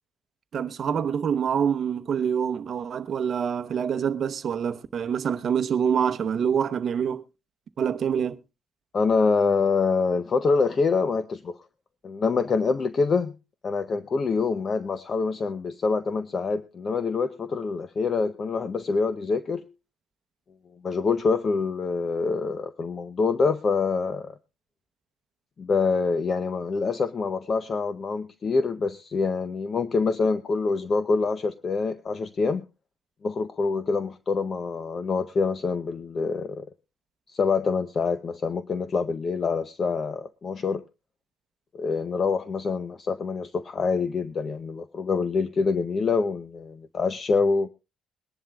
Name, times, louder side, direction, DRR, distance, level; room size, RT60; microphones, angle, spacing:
voice 1, 0.5-7.2 7.8-8.4, right 7 dB, 40° right, 0.9 m, -26 dB
voice 2, 8.9-11.6 12.0-13.3 13.6-19.7 20.8-24.3 25.6-32.7 33.2-36.6 37.3-40.8 41.8-47.7, left 4 dB, 30° left, 0.6 m, -25 dB
22.0 x 11.0 x 2.3 m
cardioid pair, 150°, 0 cm